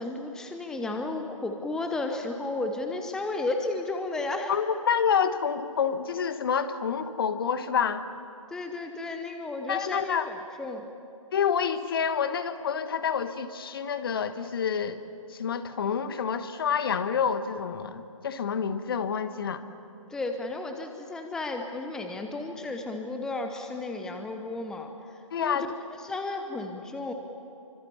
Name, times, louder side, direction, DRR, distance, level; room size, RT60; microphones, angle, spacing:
voice 1, 0.0-4.5 8.5-10.9 20.1-25.6 26.0-27.1, left 2 dB, 5° left, 5 dB, 0.9 m, -33 dB
voice 2, 4.5-8.0 9.7-10.3 11.3-15.0 15.3-19.6 25.3-25.8, left 7 dB, 45° left, 11 dB, 1.3 m, -28 dB
28.0 x 25.0 x 7.1 m, 2.7 s
figure-of-eight pair, 140°, 17 cm